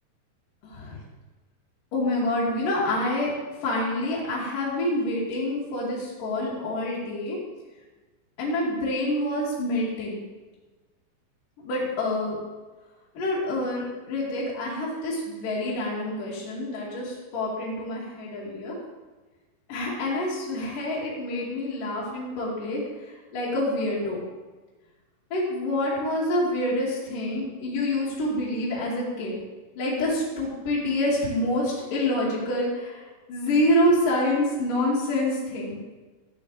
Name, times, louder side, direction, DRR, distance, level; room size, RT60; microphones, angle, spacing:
voice 1, 0.6-1.0 1.9-3.3 3.6-7.4 8.4-10.2 11.6-12.4 13.2-18.8 19.7-24.2 25.3-29.4 29.8-33.0 33.3-35.8, left 1 dB, 50° left, -7 dB, 3.7 m, -27 dB
13.0 x 11.0 x 3.4 m, 1.2 s
omnidirectional pair, 5.3 m